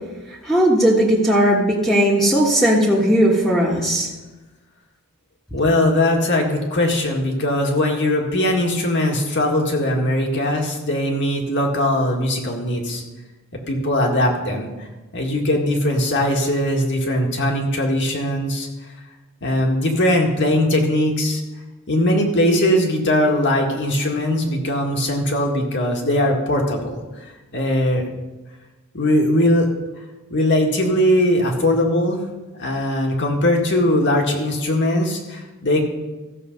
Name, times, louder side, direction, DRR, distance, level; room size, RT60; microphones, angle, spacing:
voice 1, 0.3-4.1, equal, ahead, -6 dB, 1.4 m, -17 dB
voice 2, 5.5-13.0 13.7-18.7 19.4-21.4 21.9-27.0 27.5-28.0 28.9-29.7 30.3-32.2 32.6-35.8, left 1 dB, 55° left, 1 dB, 2.0 m, -20 dB
14.5 x 7.2 x 5.4 m, 1.1 s
head